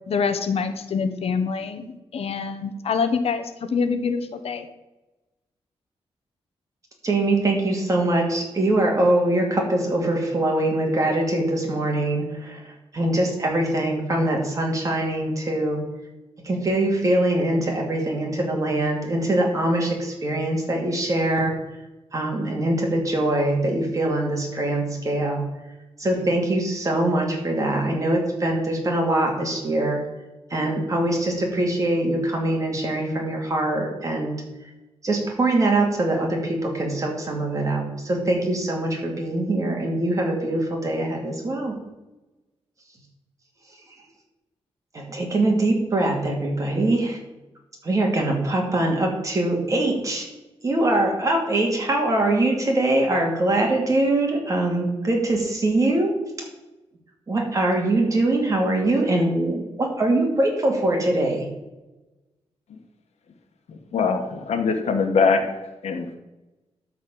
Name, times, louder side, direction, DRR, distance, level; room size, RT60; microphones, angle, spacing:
voice 1, 0.1-1.9 2.1-3.4 3.7-4.7, left 5 dB, 65° left, 9 dB, 0.9 m, -25 dB
voice 2, 7.0-15.8 16.4-21.5 22.1-25.4 26.0-30.0 30.5-34.4 35.0-41.7 44.9-47.2 47.8-50.3 50.6-56.1 57.3-61.5, right 1 dB, 30° right, 1 dB, 2.4 m, -23 dB
voice 3, 63.7-65.5 65.8-66.2, left 5 dB, 85° left, 5 dB, 1.5 m, -22 dB
12.5 x 4.3 x 7.7 m, 1.0 s
wide cardioid pair, 160°, 11 cm